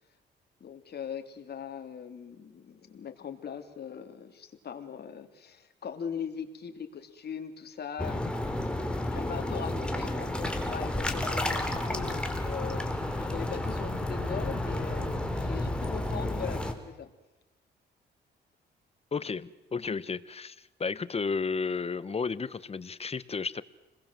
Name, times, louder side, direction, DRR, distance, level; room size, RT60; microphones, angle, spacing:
voice 1, 0.6-8.4 9.1-13.0 13.3-17.1, left 7 dB, 55° left, 3.3 m, -40 dB
sound 1, 8.0-16.7, left 1 dB, 5° left, 4.0 m, -31 dB
voice 2, 19.1-23.6, left 5 dB, 30° left, 1.2 m, -33 dB
30.0 x 21.5 x 7.7 m
cardioid pair, 90°, 20 cm